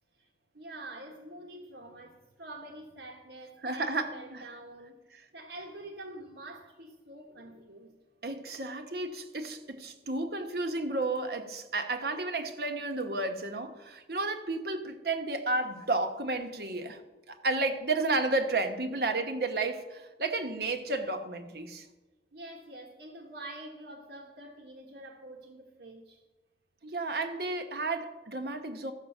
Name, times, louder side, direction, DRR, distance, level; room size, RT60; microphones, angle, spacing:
voice 1, 0.5-7.9 22.3-26.2, right 1 dB, 75° right, 1.3 m, -46 dB
voice 2, 3.6-4.4 5.1-5.2 8.2-17.0 17.3-21.9 26.8-28.9, right 2 dB, 55° right, 1.1 m, -32 dB
13.5 x 6.1 x 7.2 m
head